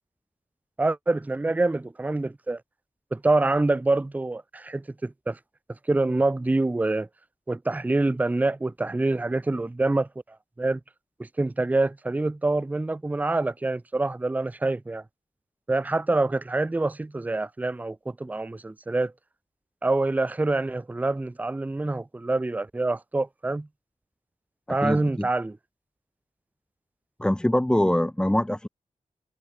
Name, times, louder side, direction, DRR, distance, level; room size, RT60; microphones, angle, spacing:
voice 1, 0.8-2.6 3.1-5.4 5.9-7.1 7.5-10.1 10.6-10.8 11.4-15.0 15.7-19.1 19.8-23.7 24.7-25.6, right 2 dB, 10° right, 0.6 m, -26 dB
voice 2, 24.7-25.3 27.2-28.7, left 1 dB, 5° left, 1.2 m, -24 dB
wide cardioid pair, 160°, 13 cm